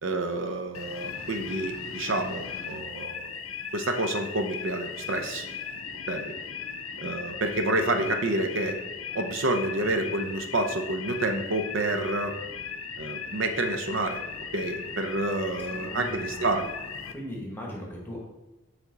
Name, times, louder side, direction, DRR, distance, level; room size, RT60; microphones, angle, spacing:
voice 1, 0.0-3.3 3.7-5.5 6.1-6.3 7.0-8.8 9.1-12.4 13.0-14.2 14.5-16.7, right 2 dB, 70° right, 6 dB, 0.6 m, -29 dB
sound 1, 0.7-17.1, left 6 dB, 85° left, 0.5 m, -37 dB
voice 2, 15.7-16.3 17.1-18.2, left 1 dB, 10° left, -2 dB, 1.2 m, -38 dB
7.3 x 3.4 x 3.9 m, 1.0 s
head